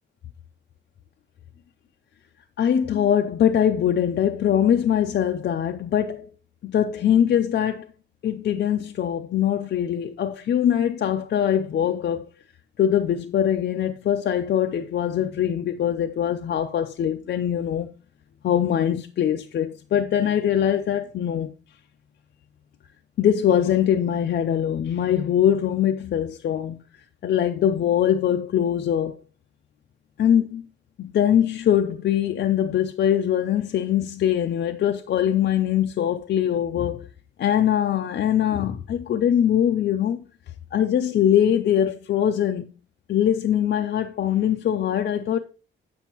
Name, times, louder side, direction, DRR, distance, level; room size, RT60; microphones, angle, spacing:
voice 1, 2.6-6.3 6.6-7.9 8.2-12.3 12.8-17.9 18.4-21.5 23.2-26.8 27.2-29.1 30.2-30.6 31.0-37.1 37.4-40.2 40.7-42.7 43.1-45.4, left 9 dB, 60° left, 0.5 m, -22 dB
8.2 x 7.1 x 2.9 m
wide cardioid pair, 170°, 20 cm